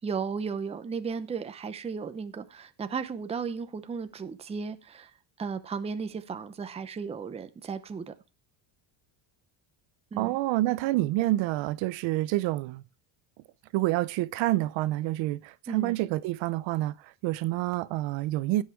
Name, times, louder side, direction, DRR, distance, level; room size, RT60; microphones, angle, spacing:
voice 1, 0.0-8.1 10.1-10.4 15.7-15.9, right 5 dB, 15° right, 0.6 m, -35 dB
voice 2, 10.2-12.8 13.7-16.9 17.2-18.6, right 17 dB, 65° right, 0.7 m, -28 dB
16.5 x 5.8 x 4.5 m
cardioid pair, 150°, 49 cm